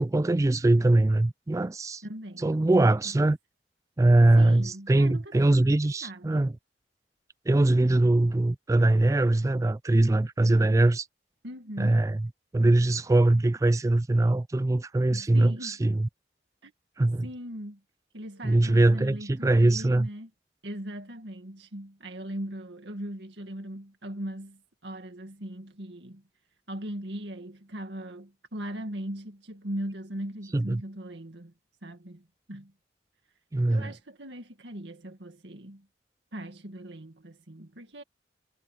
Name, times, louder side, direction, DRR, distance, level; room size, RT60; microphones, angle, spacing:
voice 1, 0.0-2.0 2.4-3.4 4.0-6.5 7.5-11.1 11.8-12.2 12.5-16.1 17.0-17.3 18.4-20.1 30.5-30.8 33.5-33.9, right 2 dB, 20° right, 0.3 m, -22 dB
voice 2, 2.0-2.9 4.2-5.6 6.0-6.4 11.4-12.1 15.1-15.8 16.6-16.7 17.2-17.8 18.1-20.3 20.6-26.2 26.7-31.5 31.8-32.7 33.7-35.9 36.3-38.0, right 1 dB, 80° right, 2.1 m, -39 dB
head